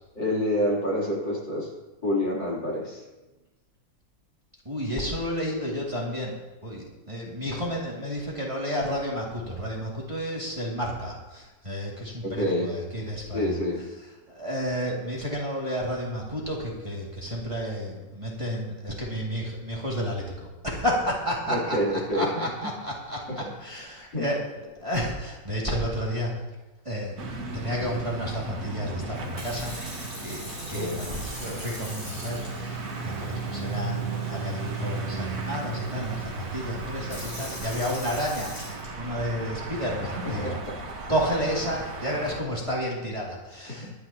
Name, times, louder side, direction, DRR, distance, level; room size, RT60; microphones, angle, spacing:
voice 1, 0.2-1.7 2.0-3.0 12.2-12.7 13.3-13.9 21.5-22.3 22.6-22.7 23.3-23.5 24.1-24.3 30.7-31.0 40.4-40.8 43.7-43.9, left 1 dB, 70° left, -4 dB, 4.1 m, -27 dB
voice 2, 4.6-6.3 6.6-13.6 14.3-21.8 22.1-26.4 26.8-27.2 27.5-29.8 30.2-30.4 30.7-40.6 41.1-44.0, equal, 15° right, -4 dB, 2.4 m, -31 dB
sound 1, 27.2-42.4, right 3 dB, 55° right, 1.9 m, -35 dB
Sink (filling or washing) / Fill (with liquid), 29.1-39.4 40.0-40.3, equal, 25° left, 5.1 m, -43 dB
23.5 x 9.8 x 2.9 m, 1.1 s
omnidirectional pair, 2.0 m